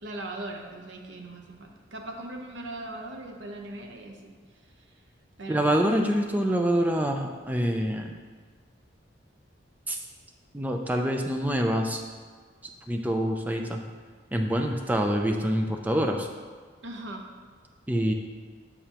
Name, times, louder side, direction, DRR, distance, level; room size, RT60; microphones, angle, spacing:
voice 1, 0.0-4.3 5.4-5.8 16.8-17.3, right 2 dB, 75° right, 2 dB, 0.8 m, -39 dB
voice 2, 5.5-8.1 9.9-10.0 10.5-12.0 12.9-13.8 14.3-16.3 17.9-18.1, equal, 10° right, 3 dB, 0.4 m, -26 dB
6.8 x 6.7 x 2.9 m, 1.5 s
head